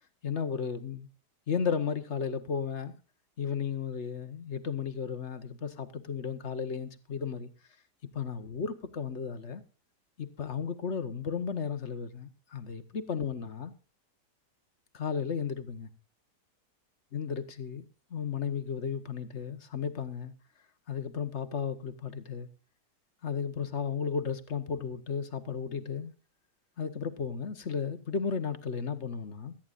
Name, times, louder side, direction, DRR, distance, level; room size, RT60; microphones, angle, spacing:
voice 1, 0.2-1.1 1.5-2.9 3.4-7.5 8.1-9.6 10.2-13.7 14.9-15.9 17.1-20.3 20.9-22.5 23.2-26.1 26.8-29.5, left 6 dB, 45° left, 1.4 m, -34 dB
17.5 x 13.5 x 2.5 m
omnidirectional pair, 1.9 m